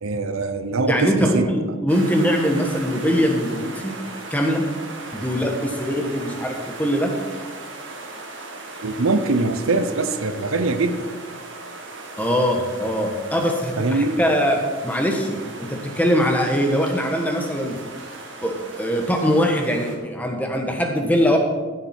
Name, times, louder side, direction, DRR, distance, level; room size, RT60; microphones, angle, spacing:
voice 1, 0.0-1.5 8.8-11.1 13.8-14.2, right 3 dB, 90° right, 10 dB, 0.8 m, -22 dB
voice 2, 0.9-3.9 4.3-4.6 5.1-7.1 12.2-17.8 18.4-21.4, equal, 10° left, 2 dB, 1.2 m, -22 dB
sound 1, 1.9-20.0, right 2 dB, 65° right, 1.8 m, -37 dB
15.5 x 7.5 x 4.4 m, 1.4 s
head